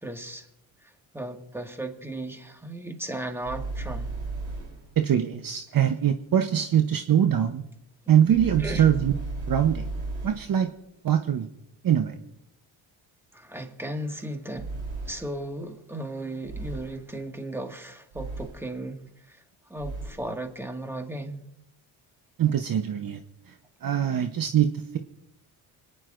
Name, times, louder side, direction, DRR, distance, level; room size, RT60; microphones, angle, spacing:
voice 1, 0.0-0.5 0.8-4.1 8.6-8.9 13.3-14.7 15.0-19.4 19.7-21.4, right 1 dB, 5° right, 1.8 m, -36 dB
sound 1, 3.4-4.9 8.3-10.6 14.5-15.4 16.4-17.1 18.1-18.8 19.8-20.3, right 3 dB, 75° right, 3.6 m, -35 dB
voice 2, 5.0-7.6 8.1-9.1 9.5-9.8 10.2-10.7 11.0-11.5 11.8-12.1 22.4-23.2 23.8-25.0, right 9 dB, 45° right, 0.9 m, -23 dB
27.5 x 10.0 x 2.5 m
supercardioid pair, 65°, 47 cm